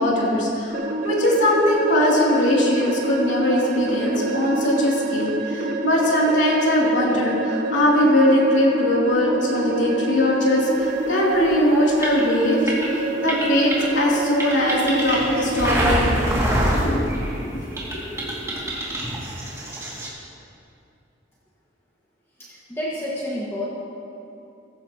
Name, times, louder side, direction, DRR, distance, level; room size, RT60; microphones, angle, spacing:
voice 1, 0.0-12.6 13.2-16.3 16.8-17.3 17.9-18.3, left 1 dB, 75° left, -4 dB, 3.0 m, -21 dB
sound 1, 0.7-15.7, right 2 dB, 50° right, 0.8 m, -27 dB
sound 2, 11.2-17.4 17.8-20.1, right 1 dB, 15° right, 2.3 m, -25 dB
voice 2, 22.4-23.6, left 1 dB, 15° left, -7 dB, 1.7 m, -29 dB
16.5 x 15.0 x 3.0 m, 2.7 s
head